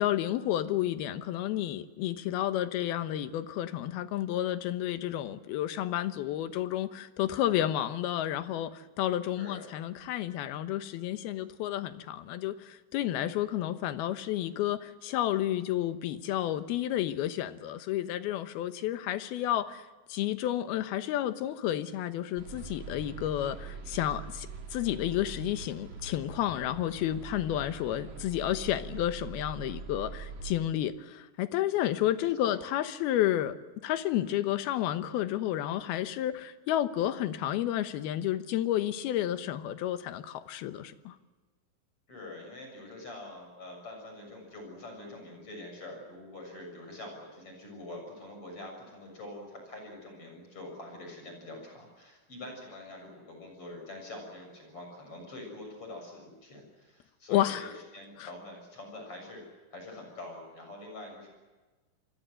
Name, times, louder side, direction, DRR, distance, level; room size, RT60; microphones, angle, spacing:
voice 1, 0.0-19.8 20.1-33.6 33.8-41.2 57.3-57.7 58.2-58.3, left 12 dB, 85° left, 3.0 m, -31 dB
voice 2, 9.3-9.7 32.2-32.6 42.1-59.4 59.7-61.3, left 2 dB, 35° left, 7.7 m, -45 dB
sound 1, 22.4-30.6, right 5 dB, 50° right, 3.8 m, -43 dB
28.0 x 22.5 x 7.9 m
omnidirectional pair, 4.4 m